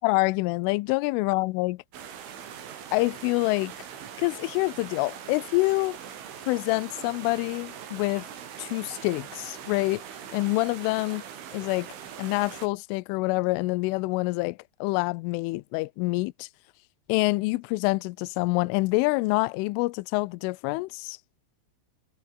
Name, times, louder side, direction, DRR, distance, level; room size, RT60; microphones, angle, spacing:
voice 1, 0.0-1.8 2.9-3.7 4.2-6.0 6.5-8.3 8.6-10.0 10.3-11.2 11.5-11.9 12.2-16.5 17.1-21.2, left 23 dB, 85° left, 3.1 m, -26 dB
sound 1, 1.9-12.7, right 8 dB, 70° right, 5.9 m, -42 dB
omnidirectional pair, 5.9 m